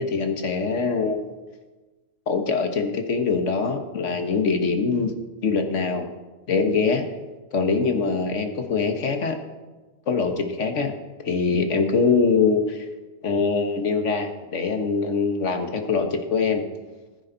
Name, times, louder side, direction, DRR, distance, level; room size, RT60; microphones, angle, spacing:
voice 1, 0.0-1.4 2.3-5.1 5.4-6.1 6.5-7.0 7.5-9.4 10.1-10.9 11.2-12.9 13.2-16.6, left 4 dB, 75° left, 5 dB, 1.6 m, -23 dB
19.5 x 9.9 x 4.0 m, 1.2 s
omnidirectional pair, 1.3 m